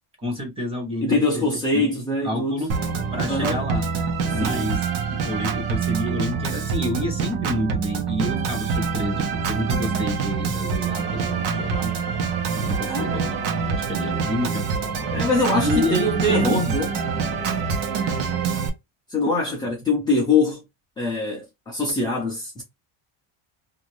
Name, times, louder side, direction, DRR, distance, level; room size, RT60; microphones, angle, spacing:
voice 1, 0.2-1.4 1.7-1.9 2.2-2.7 3.1-3.9 4.3-11.9 12.5-14.7 15.5-16.8 17.2-17.3, equal, 10° right, 0.9 m, -29 dB
voice 2, 1.0-2.6 3.3-3.7 4.3-4.7 12.9-13.2 14.0-14.2 15.1-16.9 19.1-20.6 21.0-22.6, left 2 dB, 10° left, 0.3 m, -23 dB
Organ, 2.7-18.7, right 5 dB, 70° right, 1.0 m, -26 dB
2.6 x 2.5 x 3.0 m
cardioid pair, 175°, 47 cm